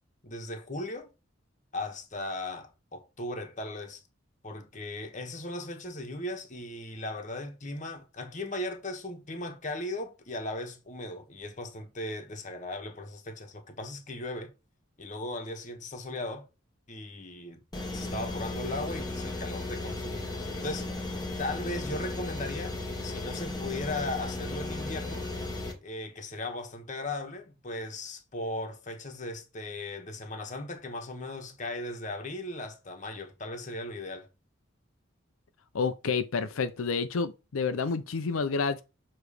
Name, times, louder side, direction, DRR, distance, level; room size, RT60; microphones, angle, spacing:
voice 1, 0.2-1.1 1.7-4.0 4.4-14.5 15.0-16.5 16.9-17.6 17.9-20.2 20.6-20.9 21.4-22.8 23.0-25.3 25.8-34.3, left 2 dB, 35° left, 1.2 m, -37 dB
sound 1, 17.7-25.7, left 2 dB, 20° left, 1.4 m, -35 dB
voice 2, 35.7-38.8, left 5 dB, 85° left, 0.5 m, -29 dB
6.9 x 3.1 x 4.8 m
head